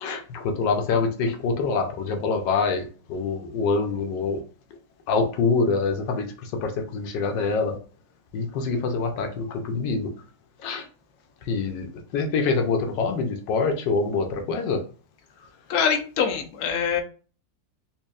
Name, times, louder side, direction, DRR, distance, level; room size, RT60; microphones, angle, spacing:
voice 1, 0.0-4.4 5.1-7.8 8.3-10.1 10.6-10.8 11.4-14.8, left 4 dB, 85° left, 5 dB, 1.4 m, -25 dB
voice 2, 15.4-17.0, left 7 dB, 65° left, 3 dB, 1.1 m, -25 dB
4.2 x 3.0 x 2.3 m, 0.38 s
omnidirectional pair, 1.9 m